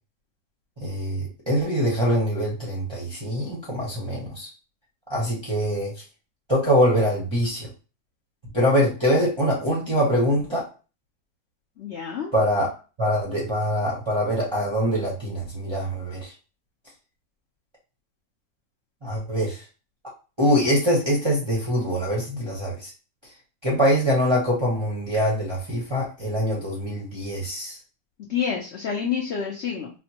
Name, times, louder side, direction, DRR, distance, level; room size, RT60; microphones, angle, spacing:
voice 1, 0.8-4.5 5.1-6.0 6.5-7.7 8.5-10.6 12.3-12.7 13.0-16.3 19.0-19.6 20.4-22.9 23.6-27.8, equal, 30° right, -6 dB, 0.5 m, -23 dB
voice 2, 11.8-12.3 28.3-29.9, left 7 dB, 85° left, -1 dB, 0.5 m, -28 dB
4.3 x 2.1 x 2.8 m, 0.34 s
omnidirectional pair, 1.9 m